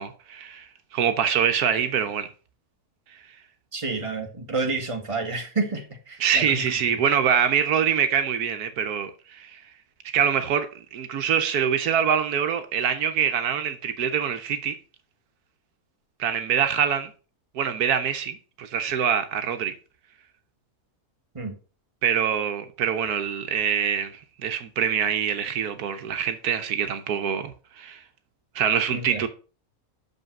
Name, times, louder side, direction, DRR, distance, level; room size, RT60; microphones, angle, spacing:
voice 1, 0.0-2.3 6.2-9.6 10.1-14.8 16.2-17.1 17.5-19.7 22.0-28.0 28.5-29.3, right 8 dB, 80° right, 1.3 m, -25 dB
voice 2, 3.7-7.0 21.3-21.5 28.9-29.2, right 3 dB, 20° right, 1.6 m, -30 dB
6.5 x 5.4 x 5.9 m
omnidirectional pair, 1.6 m